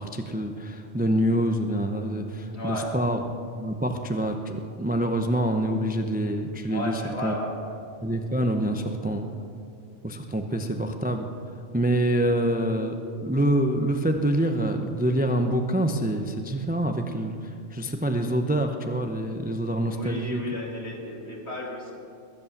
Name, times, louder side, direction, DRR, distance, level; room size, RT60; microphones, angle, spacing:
voice 1, 0.0-3.2 3.6-7.3 8.0-9.3 10.0-11.3 11.7-12.9 13.2-20.4, right 1 dB, 10° right, 5 dB, 0.6 m, -26 dB
voice 2, 2.5-2.9 6.7-7.7 8.7-9.3 12.1-12.4 19.9-21.9, left 1 dB, 60° left, -2 dB, 3.0 m, -34 dB
22.0 x 8.5 x 7.2 m, 2.5 s
omnidirectional pair, 1.3 m